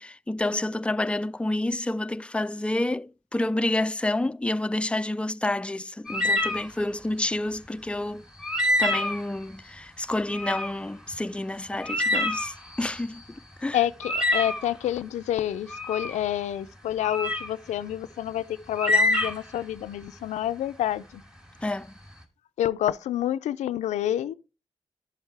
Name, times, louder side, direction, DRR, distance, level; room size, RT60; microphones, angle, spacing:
voice 1, 0.0-8.2 8.8-13.2 13.6-13.8 21.6-21.9, left 1 dB, 10° left, 0.4 m, -29 dB
sound 1, 6.1-6.7 8.4-9.3 10.3-10.7 11.1-11.2 11.8-13.2 14.0-14.7 15.7-16.2 17.0-17.5 18.7-19.6, left 1 dB, 5° right, 2.6 m, -26 dB
voice 2, 13.7-21.2 22.6-24.3, left 11 dB, 90° left, 0.4 m, -28 dB
11.0 x 7.2 x 3.3 m
supercardioid pair, 40°, 12 cm